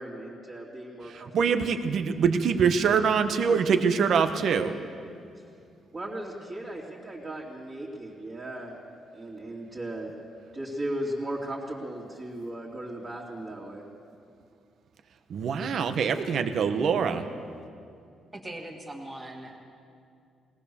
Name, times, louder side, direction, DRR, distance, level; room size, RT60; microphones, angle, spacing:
voice 1, 0.0-1.6 5.9-8.7 9.1-10.1 10.5-13.9, right 1 dB, 25° right, -8 dB, 2.9 m, -37 dB
voice 2, 1.3-4.7 15.3-17.2, right 6 dB, 55° right, 8 dB, 1.2 m, -24 dB
voice 3, 18.3-19.6, right 1 dB, 10° right, -2 dB, 2.2 m, -40 dB
20.5 x 19.0 x 7.1 m, 2.4 s
cardioid pair, 140°, 0 cm